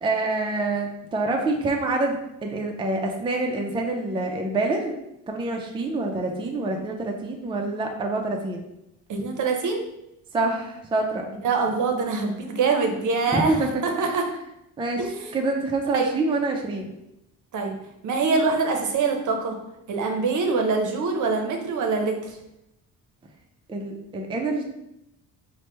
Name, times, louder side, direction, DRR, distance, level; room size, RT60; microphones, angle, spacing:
voice 1, 0.0-2.2 2.4-5.0 5.3-8.6 10.3-11.2 13.3-13.7 14.0-14.1 14.8-16.9 23.7-24.6, right 2 dB, 15° right, 2 dB, 0.4 m, -26 dB
voice 2, 9.1-9.8 11.4-13.6 13.8-14.2 15.0-15.4 15.9-16.2 17.5-17.8 18.0-19.6 19.9-22.4, right 4 dB, 60° right, 3 dB, 0.7 m, -24 dB
3.1 x 2.2 x 3.0 m, 0.84 s
cardioid pair, 75°, 35 cm